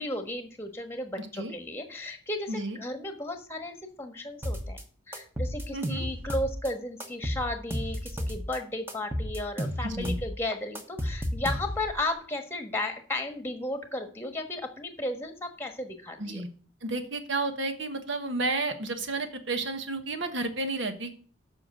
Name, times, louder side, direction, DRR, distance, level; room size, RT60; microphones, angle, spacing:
voice 1, 0.0-4.8 5.1-16.4, left 1 dB, 10° left, 6 dB, 1.3 m, -34 dB
voice 2, 1.2-1.5 2.5-2.8 5.7-6.1 9.8-10.2 16.2-16.5 16.8-21.1, right 2 dB, 70° right, 8 dB, 1.3 m, -32 dB
sound 1, 4.4-4.8 5.1-6.7 7.0-8.6 8.9-12.0, equal, 10° right, 1.0 m, -32 dB
7.8 x 5.8 x 7.7 m, 0.43 s
head